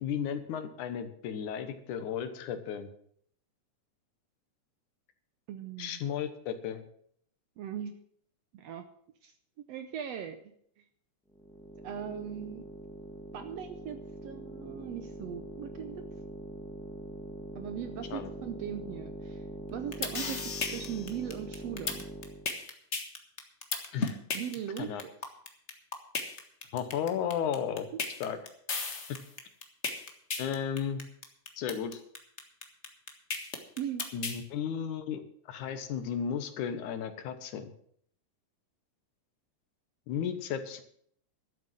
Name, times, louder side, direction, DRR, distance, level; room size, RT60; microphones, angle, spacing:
voice 1, 0.0-2.9 5.8-6.8 18.1-18.3 23.9-24.2 24.8-25.0 26.7-27.9 28.2-28.4 29.1-29.2 30.4-31.0 31.6-32.0 34.1-35.2 35.5-37.7 40.1-40.8, left 8 dB, 75° left, 10 dB, 2.5 m, -34 dB
voice 2, 5.5-6.0 7.6-7.9 8.5-8.8 9.2-9.3 9.7-10.4 11.8-12.7 13.3-16.0 17.5-19.4 19.7-22.0 24.3-24.9 27.9-28.0 33.8-34.1, right 9 dB, 70° right, 9 dB, 1.6 m, -39 dB
sound 1, 11.3-22.5, equal, 5° left, 0.7 m, -43 dB
sound 2, 19.7-34.4, left 4 dB, 45° left, 0.9 m, -34 dB
12.5 x 7.7 x 7.6 m, 0.64 s
omnidirectional pair, 3.6 m